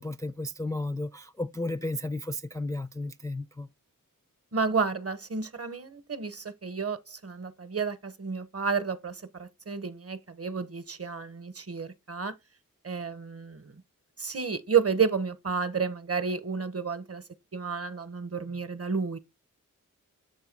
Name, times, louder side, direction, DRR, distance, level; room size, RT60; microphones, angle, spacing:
voice 1, 0.0-3.7, left 2 dB, 10° left, 0.3 m, -33 dB
voice 2, 4.5-12.3 12.8-13.7 14.2-17.2 17.5-19.2, right 5 dB, 45° right, 0.8 m, -31 dB
7.0 x 2.6 x 5.2 m
wide cardioid pair, 45°, 33 cm